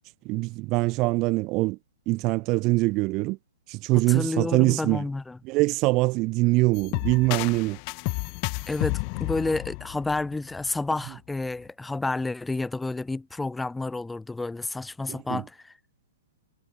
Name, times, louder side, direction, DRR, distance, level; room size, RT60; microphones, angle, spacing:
voice 1, 0.3-1.8 2.1-3.4 3.7-5.0 5.4-7.8 15.1-15.4, right 23 dB, 35° right, 1.7 m, -23 dB
voice 2, 4.1-5.4 8.7-15.7, left 2 dB, 5° left, 2.8 m, -30 dB
sound 1, 6.7-10.7, left 40 dB or more, 40° left, 1.2 m, -31 dB
hypercardioid pair, 120°, 0 cm